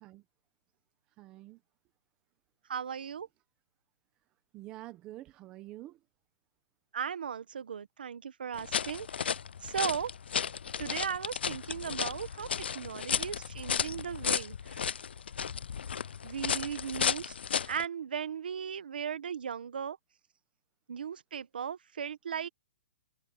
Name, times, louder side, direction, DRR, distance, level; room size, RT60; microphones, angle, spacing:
voice 1, 1.2-1.6 4.5-6.0, right 16 dB, 15° right, 1.0 m, -47 dB
voice 2, 2.7-3.3 6.9-9.3 9.6-10.1 10.8-12.5 12.7-14.8 16.2-17.3 17.6-20.0 20.9-22.5, right 7 dB, 65° right, 1.3 m, -37 dB
sound 1, 8.5-17.8, left 7 dB, 80° left, 0.4 m, -34 dB
hypercardioid pair, 180°, 6 cm